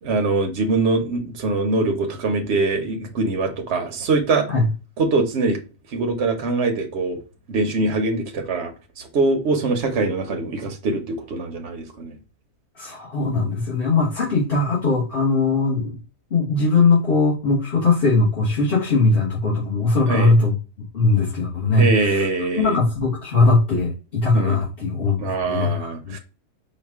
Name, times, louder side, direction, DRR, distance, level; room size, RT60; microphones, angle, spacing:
voice 1, 0.0-4.5 5.0-5.6 5.9-7.2 7.5-12.2 20.1-20.3 21.8-22.8 24.3-24.6 25.2-26.2, right 3 dB, 60° right, 1.0 m, -23 dB
voice 2, 12.7-16.0 16.3-20.5 20.9-22.3 22.6-26.1, left 3 dB, 45° left, 1.5 m, -20 dB
5.0 x 2.4 x 3.4 m
omnidirectional pair, 1.4 m